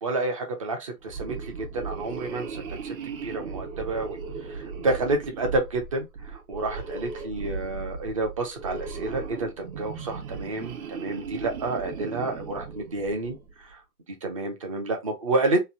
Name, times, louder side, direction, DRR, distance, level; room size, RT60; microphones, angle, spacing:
voice 1, 0.0-2.9 3.2-13.8 14.2-15.6, right 2 dB, 25° right, 0.3 m, -29 dB
sound 1, 1.0-13.5, right 5 dB, 60° right, 0.9 m, -37 dB
3.0 x 2.0 x 2.4 m
hypercardioid pair, 135°, 47 cm